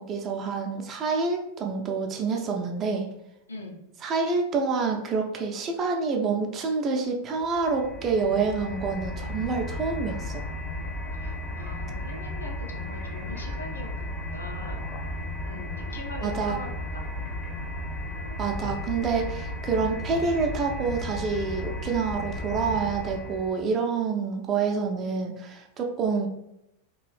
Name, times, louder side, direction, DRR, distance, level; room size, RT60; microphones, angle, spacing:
voice 1, 0.0-3.1 4.0-10.4 16.2-16.6 18.4-26.3, right 4 dB, 30° right, 2 dB, 0.5 m, -27 dB
sound 1, 7.4-23.6, left 1 dB, 20° left, 0.6 m, -34 dB
voice 2, 11.1-13.9 14.2-14.8 15.4-17.0 17.5-17.7, left 2 dB, 75° left, 1 dB, 0.6 m, -41 dB
3.0 x 2.5 x 3.2 m, 0.81 s
figure-of-eight pair, 90°, 0 cm